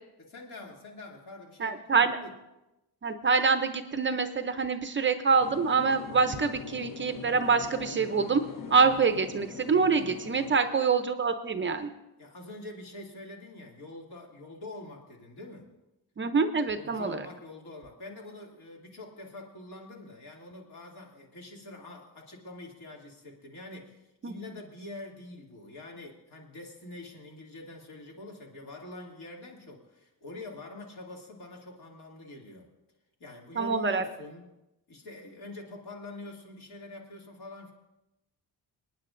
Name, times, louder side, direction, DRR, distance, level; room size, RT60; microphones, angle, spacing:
voice 1, 0.3-2.3 10.4-10.5 12.2-15.7 16.7-32.7 33.2-34.5 34.9-37.7, left 2 dB, 65° left, -1 dB, 2.6 m, -45 dB
voice 2, 1.6-2.2 3.0-8.4 8.7-11.9 16.2-17.3 24.2-24.3 33.6-34.0, right 5 dB, 30° right, 8 dB, 0.5 m, -25 dB
sound 1, 5.4-10.6, left 5 dB, 50° left, 0.8 m, -42 dB
28.0 x 9.6 x 2.5 m, 0.96 s
cardioid pair, 155°, 41 cm